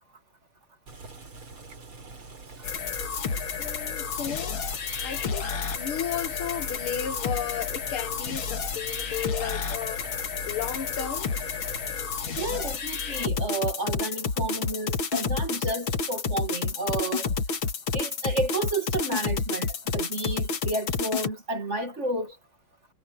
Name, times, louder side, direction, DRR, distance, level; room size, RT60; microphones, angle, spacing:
Boiling, 0.9-12.6, right 3 dB, 80° right, 4.8 m, -46 dB
sound 1, 2.6-21.3, left 5 dB, 75° left, 2.6 m, -30 dB
voice 1, 3.6-4.6 5.0-10.1 10.5-11.3, left 8 dB, 90° left, 2.3 m, -34 dB
voice 2, 12.4-17.3 17.9-22.4, right 2 dB, 35° right, 2.4 m, -31 dB
omnidirectional pair, 2.3 m